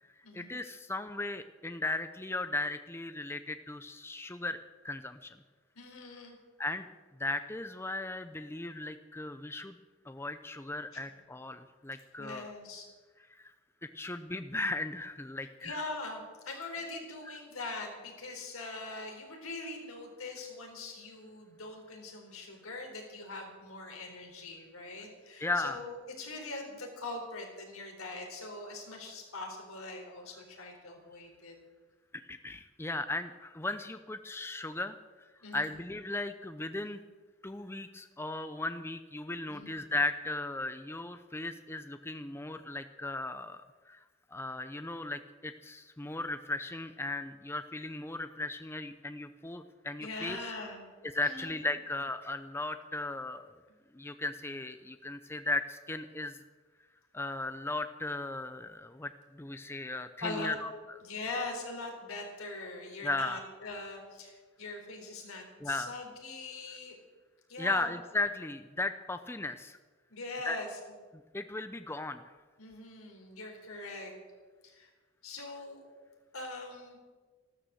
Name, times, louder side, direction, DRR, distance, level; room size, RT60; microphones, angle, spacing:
voice 1, 0.3-4.6 4.8-5.4 6.6-6.9 7.2-9.8 10.1-12.5 13.4-13.5 13.8-15.8 25.4-25.8 32.3-35.0 35.5-37.0 37.4-44.0 44.3-50.4 51.0-53.5 53.9-56.4 57.1-60.7 63.0-63.4 65.6-65.9 67.6-69.8 70.4-70.6 71.3-72.2, left 2 dB, 10° left, 10 dB, 0.5 m, -36 dB
voice 2, 5.8-6.4 12.2-12.9 15.6-31.5 35.4-35.7 39.5-39.7 50.0-50.8 51.2-51.8 60.2-60.6 61.0-67.0 67.5-67.9 70.1-70.8 72.6-74.1 74.6-74.9 75.2-75.8 76.3-77.0, left 3 dB, 85° left, 2 dB, 4.2 m, -42 dB
14.5 x 12.5 x 7.7 m, 1.4 s
head